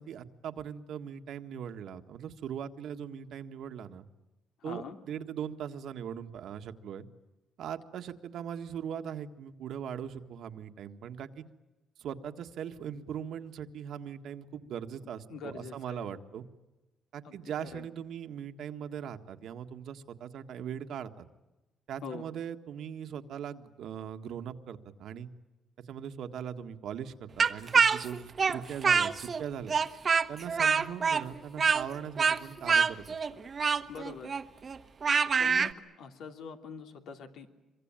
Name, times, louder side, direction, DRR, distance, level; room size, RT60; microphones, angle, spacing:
voice 1, 0.0-4.1 4.6-7.0 7.6-11.4 12.0-16.4 17.1-21.2 21.9-25.3 25.9-29.8 30.3-33.2, right 8 dB, 75° right, 7 dB, 1.7 m, -40 dB
voice 2, 4.6-5.0 15.3-16.0 17.2-17.4 17.7-17.9 22.0-22.3 33.9-34.3 35.4-37.5, left 5 dB, 80° left, 5 dB, 2.9 m, -43 dB
Speech, 27.4-29.4 29.7-35.7, right 5 dB, 45° right, 1.2 m, -26 dB
26.0 x 23.5 x 9.0 m, 1.1 s
cardioid pair, 90°, 0 cm